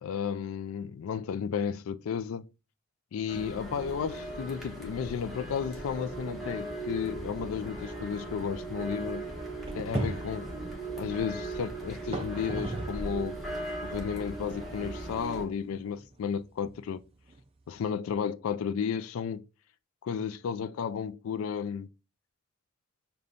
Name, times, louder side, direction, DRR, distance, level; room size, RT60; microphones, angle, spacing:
voice 1, 0.0-2.4 3.1-9.2 9.7-10.5 11.0-13.4 13.8-17.0 17.7-19.4 20.0-21.9, left 7 dB, 85° left, 0.3 m, -33 dB
sound 1, 3.3-15.5, right 2 dB, ahead, 1.0 m, -38 dB
sound 2, 5.0-5.4 5.7-5.8 6.5-6.6 7.1-13.2 13.5-17.8, right 2 dB, 25° right, 0.4 m, -40 dB
6.7 x 2.2 x 2.5 m
head